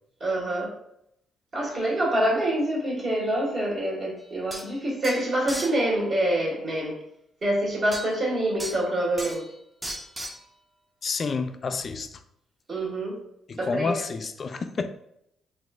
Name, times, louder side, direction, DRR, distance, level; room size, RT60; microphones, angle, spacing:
voice 1, 0.2-0.7 1.5-6.9 7.4-9.4 12.7-13.2 13.6-14.0, right 1 dB, 45° right, 1.5 m, -26 dB
sound 1, 4.2-4.3 4.5-4.7 5.0-5.8 7.9-8.1 8.6-8.9 9.2-9.5 9.8-10.4, right 1 dB, 15° right, 0.5 m, -36 dB
voice 2, 11.0-12.1 13.5-14.9, left 4 dB, 45° left, 0.3 m, -29 dB
4.0 x 2.5 x 2.4 m
cardioid pair, 90°, 0 cm